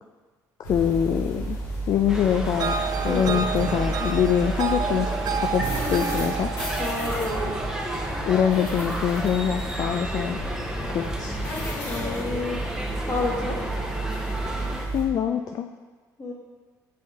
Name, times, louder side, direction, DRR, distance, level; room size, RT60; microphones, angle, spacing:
sound 1, 0.6-15.0, right 2 dB, 80° left, 1.6 m, -32 dB
voice 1, 0.6-1.6 1.9-2.8 3.0-5.6 5.9-6.5 8.2-10.4 10.9-11.4 14.9-15.7, left 9 dB, 55° left, 5 dB, 0.3 m, -24 dB
sound 2, 2.1-14.9, right 1 dB, 5° right, 0.8 m, -33 dB
sound 3, 2.6-9.7, right 6 dB, 50° right, 0.3 m, -31 dB
voice 2, 3.0-3.4 6.8-7.6 11.8-12.6 13.1-13.6 16.2-16.3, left 3 dB, 35° left, -2 dB, 1.5 m, -29 dB
6.4 x 4.3 x 3.5 m, 1.4 s
supercardioid pair, 80°, 8 cm